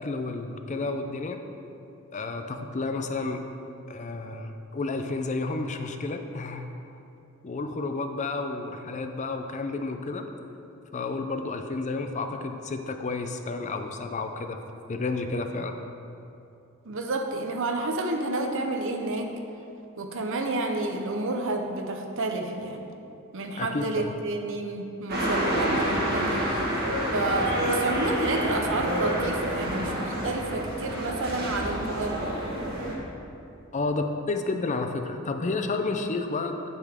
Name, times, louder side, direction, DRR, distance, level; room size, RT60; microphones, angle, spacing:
voice 1, 0.0-1.4 2.1-3.4 3.9-6.7 7.4-10.2 10.9-14.6 14.9-15.8 23.6-24.1 33.7-36.6, left 3 dB, 35° left, 6 dB, 0.5 m, -31 dB
voice 2, 16.8-19.4 20.0-22.8 23.3-26.5 27.1-32.4, right 2 dB, 65° right, 4 dB, 0.8 m, -30 dB
sound 1, 25.1-32.9, right 1 dB, 45° right, 1.7 m, -28 dB
8.7 x 8.1 x 3.6 m, 2.7 s
head